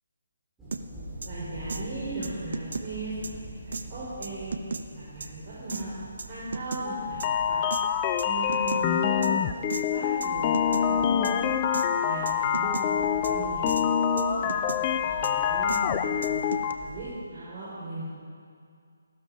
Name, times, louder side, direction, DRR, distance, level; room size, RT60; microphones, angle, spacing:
sound 1, 0.6-17.1, right 1 dB, 5° right, 4.6 m, -45 dB
sound 2, 0.7-0.8 1.2-1.3 1.7-1.8 2.2-2.9 3.2-3.3 3.7-3.8 4.2-4.8 5.2-5.3 5.7-5.8 6.2-6.8 7.2-7.3 7.7-7.8 8.2-8.8 9.2-9.3 9.7-9.8 10.2-10.3 10.5-10.9 11.2-11.3 11.7-11.9 12.3-12.9 13.2-13.3 13.7-13.8 14.2-14.8 15.2-15.3 15.7-15.8 16.2-16.7, right 4 dB, 60° right, 0.8 m, -34 dB
voice 1, 1.2-3.1 3.6-4.5 4.9-6.0 6.2-7.6 8.2-11.5 12.0-18.0, right 2 dB, 35° right, -9 dB, 4.5 m, -38 dB
sound 3, 6.8-16.7, left 8 dB, 25° left, 0.6 m, -26 dB
15.5 x 12.5 x 5.5 m, 2.3 s
figure-of-eight pair, 145°, 0 cm